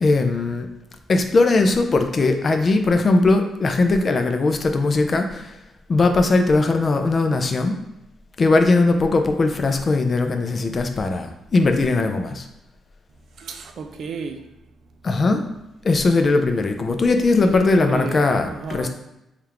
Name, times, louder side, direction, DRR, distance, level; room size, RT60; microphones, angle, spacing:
voice 1, 0.0-0.7 1.1-5.5 5.9-7.8 8.4-12.5 15.0-15.4 15.8-18.9, left 3 dB, 40° left, 0.4 m, -19 dB
voice 2, 13.4-14.5 17.4-18.9, right 5 dB, 65° right, 0.4 m, -32 dB
3.4 x 2.4 x 4.3 m
cardioid pair, 95°, 0 cm